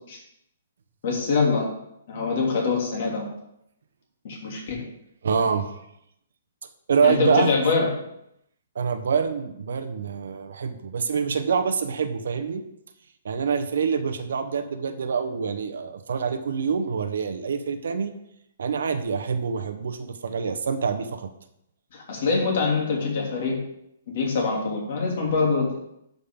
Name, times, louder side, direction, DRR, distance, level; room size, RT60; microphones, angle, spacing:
voice 1, 1.0-1.7 2.1-3.2 4.2-4.8 7.0-7.9 21.9-23.6 24.1-25.8, left 4 dB, 45° left, -1 dB, 2.8 m, -24 dB
voice 2, 5.2-5.7 6.9-7.5 8.7-12.6 13.2-18.1 18.6-21.3, right 6 dB, 70° right, 9 dB, 1.0 m, -26 dB
11.5 x 5.4 x 3.7 m, 0.79 s
hypercardioid pair, 165°, 0 cm